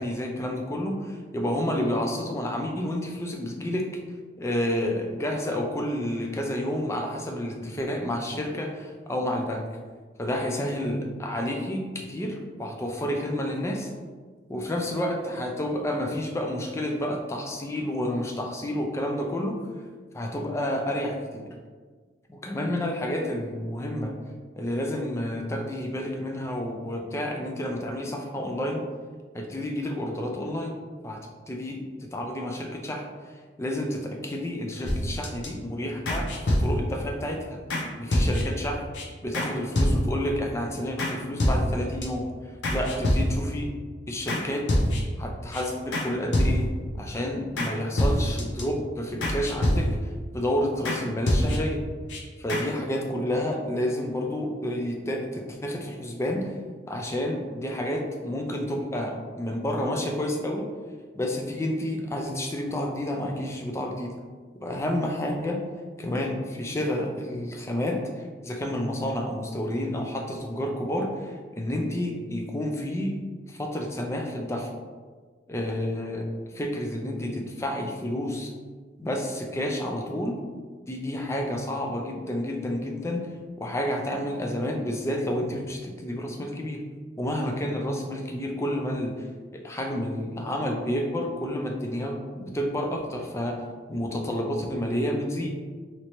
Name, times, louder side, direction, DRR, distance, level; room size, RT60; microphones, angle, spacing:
voice 1, 0.0-3.9 4.4-9.7 10.2-13.9 14.5-19.7 20.1-21.5 22.3-24.1 24.6-28.8 29.3-30.8 31.0-37.6 38.0-38.9 39.2-42.3 42.7-43.8 44.1-44.7 45.2-46.7 47.0-50.0 50.3-51.8 52.4-56.5 56.9-60.7 61.1-64.2 64.6-65.6 66.0-73.2 73.5-74.7 75.5-78.5 79.0-80.4 80.9-83.3 83.6-86.8 87.2-89.3 89.5-93.6 93.9-95.5, left 1 dB, 15° left, 1 dB, 0.3 m, -30 dB
sound 1, 34.8-35.5 36.1-37.0 37.7-37.8 38.1-38.6 38.9-39.0 39.3-39.5 39.8-40.3 41.0-41.1 41.4-42.1 42.6-43.6 44.3-44.4 44.7-45.2 45.5-45.6 45.9-46.1 46.3-46.9 47.6-47.7 48.0-48.6 49.2-50.2 50.9-51.0 51.3-51.8 52.1-52.2 52.5-52.6, equal, 80° left, 0.7 m, -25 dB
3.1 x 2.8 x 2.9 m, 1.5 s
head